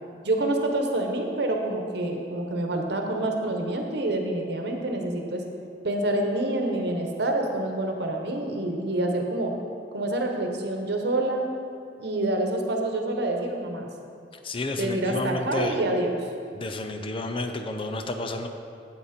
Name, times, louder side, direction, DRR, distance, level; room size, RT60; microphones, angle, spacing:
voice 1, 0.2-5.4 5.8-9.5 9.9-11.5 12.0-13.9 14.8-16.2, right 1 dB, 65° right, 3 dB, 1.1 m, -27 dB
voice 2, 14.4-15.8 16.6-18.5, left 2 dB, 30° left, 5 dB, 0.5 m, -31 dB
8.8 x 8.3 x 4.3 m, 2.4 s
head